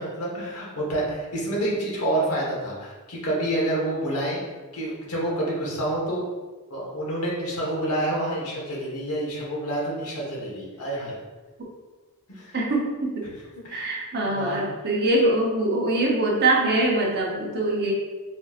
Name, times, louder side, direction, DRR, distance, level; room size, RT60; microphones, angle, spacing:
voice 1, 0.0-4.4 4.7-6.3 6.7-11.2 12.3-12.6 13.2-13.3 13.6-14.6, right 1 dB, 75° left, -4 dB, 1.2 m, -28 dB
voice 2, 12.5-13.3 13.7-17.9, right 2 dB, 50° right, -1 dB, 0.7 m, -23 dB
4.2 x 2.8 x 2.4 m, 1.3 s
head